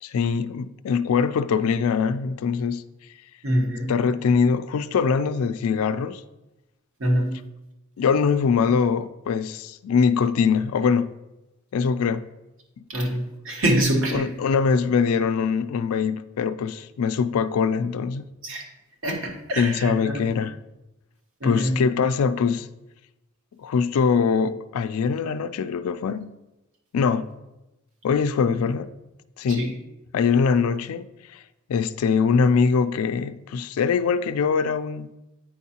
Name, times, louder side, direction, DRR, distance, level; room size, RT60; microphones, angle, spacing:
voice 1, 0.0-2.9 3.9-6.2 8.0-11.1 11.7-12.3 12.8-12.9 14.1-18.3 19.6-20.6 21.4-22.7 23.6-26.3 26.9-27.3 28.0-28.9 29.4-29.7 30.1-31.4 31.7-35.2, left 5 dB, 80° left, 0.3 m, -23 dB
voice 2, 3.4-3.9 7.0-7.4 12.9-14.3 18.4-18.6 19.0-20.2 21.4-21.8 29.5-29.7, right 1 dB, 65° right, 1.1 m, -25 dB
8.8 x 4.6 x 2.8 m
head